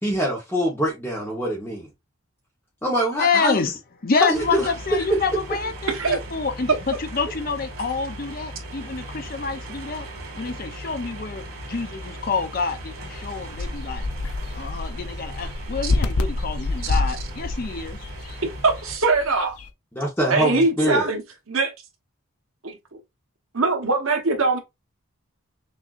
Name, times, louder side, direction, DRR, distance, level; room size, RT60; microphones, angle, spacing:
voice 1, 0.0-1.9 2.8-3.6 4.2-4.7 5.1-5.2 19.9-21.1, right 1 dB, 10° left, 1.0 m, -24 dB
voice 2, 3.2-3.7 4.0-10.1 10.3-14.1 14.5-18.0, left 5 dB, 40° left, 0.5 m, -27 dB
sound 1, 4.3-19.0, right 1 dB, 85° right, 2.2 m, -38 dB
voice 3, 5.9-6.2 15.8-15.9 16.8-17.0 18.6-19.6 20.3-21.2 21.5-21.7 22.6-22.8 23.5-24.6, right 3 dB, 70° right, 1.2 m, -22 dB
sound 2, 12.9-19.7, left 2 dB, 90° left, 0.6 m, -28 dB
6.1 x 2.7 x 2.4 m
head